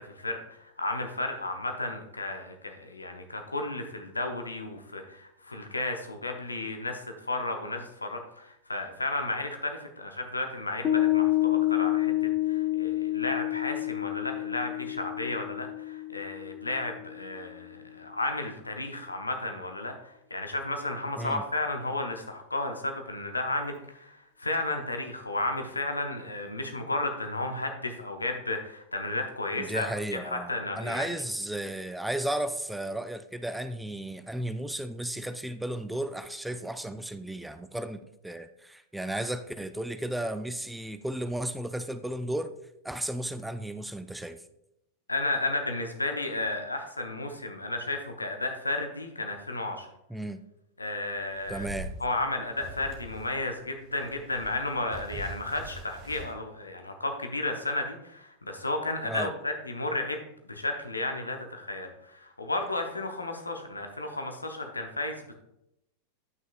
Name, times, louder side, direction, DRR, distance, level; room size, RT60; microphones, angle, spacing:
voice 1, 0.0-31.1 45.1-49.9 50.8-51.7 52.0-65.3, left 2 dB, 80° left, 0.7 m, -33 dB
Piano, 10.8-17.6, left 16 dB, 25° left, 0.7 m, -29 dB
voice 2, 29.6-42.5 42.8-44.4 50.1-50.4 51.5-51.9 59.0-59.3, right 1 dB, 5° right, 0.3 m, -34 dB
sound 1, 51.1-53.5 53.8-56.3, right 1 dB, 45° right, 1.5 m, -43 dB
9.2 x 5.9 x 2.4 m
figure-of-eight pair, 90°, 0 cm